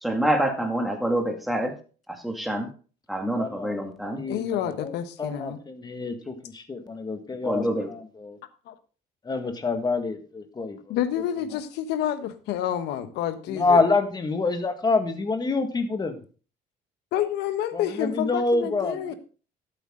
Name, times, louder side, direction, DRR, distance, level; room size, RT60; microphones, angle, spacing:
voice 1, 0.0-1.7 2.1-2.7 3.1-4.2 7.4-7.9, right 1 dB, ahead, 3 dB, 2.1 m, -26 dB
voice 2, 3.4-3.8 4.1-7.6 7.9-8.4 9.2-11.0 13.5-16.2 17.7-19.1, left 3 dB, 25° left, 7 dB, 1.9 m, -27 dB
voice 3, 4.3-5.6 8.7-8.8 10.9-13.8 17.1-19.1, left 10 dB, 85° left, 11 dB, 1.2 m, -29 dB
12.5 x 8.3 x 3.8 m, 0.37 s
cardioid pair, 110°, 17 cm